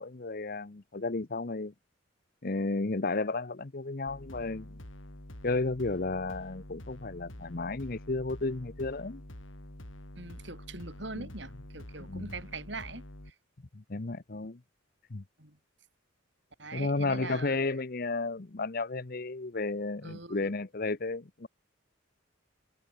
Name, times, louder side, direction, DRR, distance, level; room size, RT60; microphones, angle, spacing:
voice 1, 0.0-1.7 2.4-4.8 5.4-9.2 11.2-11.3 12.1-12.3 13.7-14.6 15.1-15.2 16.7-21.5, left 3 dB, 45° left, 0.8 m, -33 dB
sound 1, 4.1-13.3, left 1 dB, 75° left, 4.8 m, -47 dB
voice 2, 10.2-13.0 15.4-15.6 16.6-17.6 20.0-20.5, right 3 dB, 60° right, 4.4 m, -42 dB
head